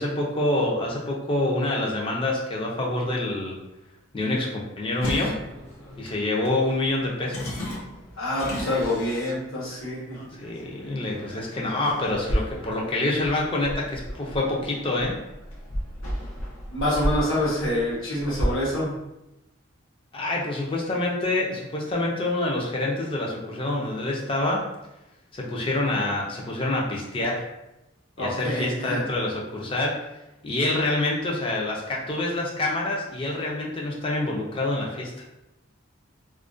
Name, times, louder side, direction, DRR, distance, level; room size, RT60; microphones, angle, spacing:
voice 1, 0.0-3.6 4.1-5.3 6.0-7.5 10.4-15.2 20.1-24.6 25.3-27.4 28.2-30.1 30.4-35.2, left 2 dB, 25° left, -2 dB, 0.4 m, -26 dB
sound 1, 5.0-18.6, equal, 85° left, 0.6 m, -34 dB
voice 2, 8.2-10.2 16.7-18.9 28.2-29.0, left 1 dB, 70° left, -7 dB, 1.0 m, -26 dB
2.4 x 2.1 x 2.4 m, 0.91 s
head